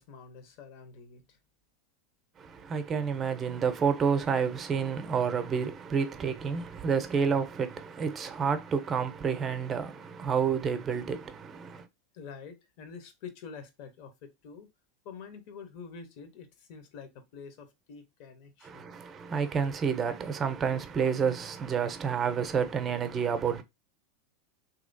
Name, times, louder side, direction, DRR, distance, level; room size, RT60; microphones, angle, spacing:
voice 1, 0.0-1.4 12.1-14.7 15.0-18.9, left 6 dB, 60° left, 0.9 m, -47 dB
voice 2, 2.4-11.9 18.6-23.6, right 6 dB, 30° right, 0.6 m, -29 dB
3.0 x 2.8 x 2.6 m
hypercardioid pair, 95°, 0 cm